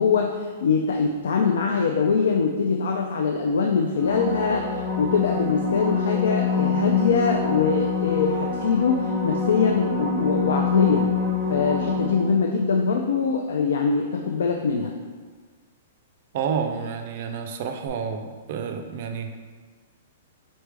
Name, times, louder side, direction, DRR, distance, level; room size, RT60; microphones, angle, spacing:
voice 1, 0.0-11.1 11.5-14.9, left 5 dB, 80° left, 2 dB, 0.4 m, -23 dB
sound 1, 3.9-12.5 17.9-18.0, left 4 dB, 5° right, 0.7 m, -26 dB
voice 2, 16.3-19.4, right 6 dB, 45° right, 6 dB, 0.4 m, -29 dB
4.0 x 3.3 x 3.4 m, 1.5 s
hypercardioid pair, 165°, 0 cm